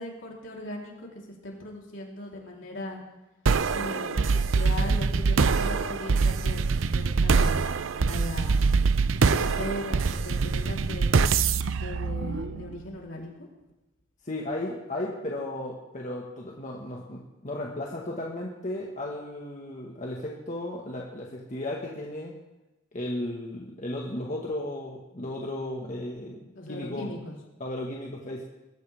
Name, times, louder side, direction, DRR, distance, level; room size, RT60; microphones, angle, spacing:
voice 1, 0.0-3.0 3.7-7.5 8.1-8.7 9.2-11.1 11.8-13.5 26.6-27.4, left 1 dB, 65° left, -2 dB, 3.8 m, -38 dB
sound 1, 3.5-12.9, right 4 dB, 75° right, 0.6 m, -24 dB
voice 2, 14.2-22.3 22.9-27.1 27.6-28.4, left 1 dB, 40° left, -2 dB, 1.7 m, -35 dB
22.0 x 14.5 x 3.6 m, 0.99 s
head